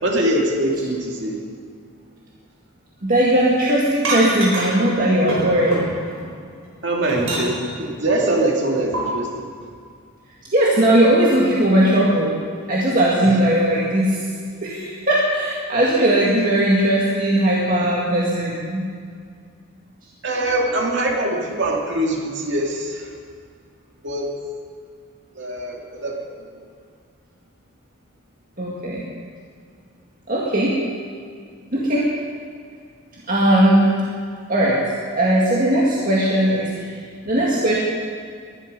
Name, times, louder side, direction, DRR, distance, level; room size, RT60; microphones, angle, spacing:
voice 1, 0.0-1.4 6.8-9.5 13.2-13.4 20.2-23.1 24.0-24.3 25.3-26.6, right 1 dB, 55° right, -1 dB, 2.5 m, -23 dB
voice 2, 3.0-5.9 10.5-12.4 12.7-14.2 14.6-18.9 28.6-29.0 30.3-30.8 31.7-32.1 33.3-33.9 34.5-34.8 35.2-36.9 37.2-37.8, right 1 dB, 40° right, -5 dB, 2.0 m, -18 dB
sound 1, 4.0-4.9 5.3-6.2 6.6-7.8 8.9-9.0, right 2 dB, 85° right, 5.5 m, -26 dB
22.0 x 11.5 x 5.4 m, 2.1 s
head